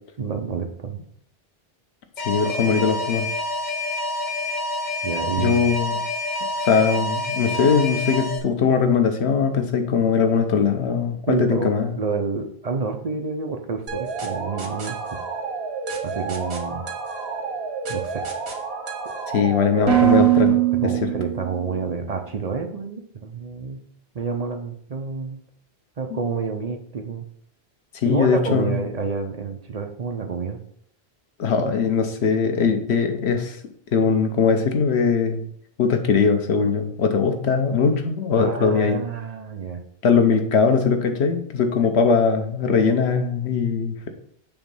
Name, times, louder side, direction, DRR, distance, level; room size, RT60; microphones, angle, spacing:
voice 1, 0.2-1.0 2.4-2.7 5.0-5.7 11.3-15.2 16.0-16.8 17.9-18.3 20.1-23.8 24.1-25.4 26.0-27.2 28.1-30.6 38.4-39.8, right 5 dB, 45° right, 5 dB, 0.6 m, -29 dB
voice 2, 2.2-3.3 5.4-6.0 6.6-11.9 19.3-20.6 20.8-21.1 26.1-26.2 27.9-28.8 31.4-33.6 33.9-35.5 35.8-39.0 40.0-44.1, left 5 dB, 90° left, 6 dB, 1.1 m, -20 dB
Alarm, 2.2-8.4, left 2 dB, 45° left, 1.1 m, -27 dB
sound 1, 13.9-21.7, right 10 dB, 90° right, 1.4 m, -24 dB
6.9 x 3.1 x 5.3 m, 0.65 s
omnidirectional pair, 1.1 m